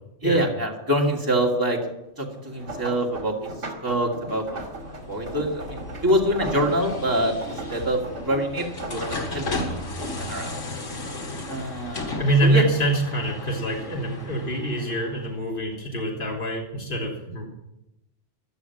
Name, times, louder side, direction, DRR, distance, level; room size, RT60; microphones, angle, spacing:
voice 1, 0.2-1.8 2.2-3.5 3.8-4.6 5.1-10.5 11.5-12.6, right 1 dB, 15° right, -1 dB, 2.4 m, -25 dB
sound 1, 2.4-11.9 12.3-13.2 13.6-15.0 15.7-16.0 16.4-16.5, right 1 dB, 65° right, 2.7 m, -38 dB
sound 2, 4.5-15.2, left 2 dB, 80° left, 2.1 m, -35 dB
voice 2, 12.2-17.5, right 1 dB, 45° left, -2 dB, 3.5 m, -25 dB
17.0 x 11.5 x 6.0 m, 0.87 s
omnidirectional pair, 1.2 m